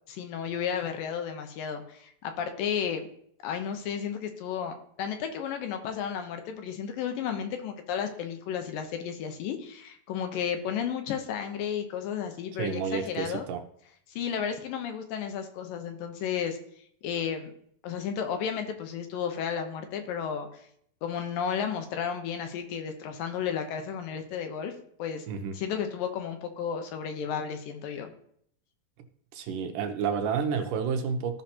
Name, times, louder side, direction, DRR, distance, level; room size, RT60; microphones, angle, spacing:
voice 1, 0.1-3.1 3.4-13.5 14.2-16.6 17.0-17.5 17.8-20.6 21.0-24.7 25.0-25.2 25.5-28.1, left 7 dB, 80° left, 6 dB, 2.6 m, -33 dB
voice 2, 12.6-13.6 25.3-25.5 29.3-31.4, right 6 dB, 75° right, 5 dB, 2.2 m, -30 dB
15.5 x 5.6 x 2.9 m, 0.66 s
omnidirectional pair, 4.1 m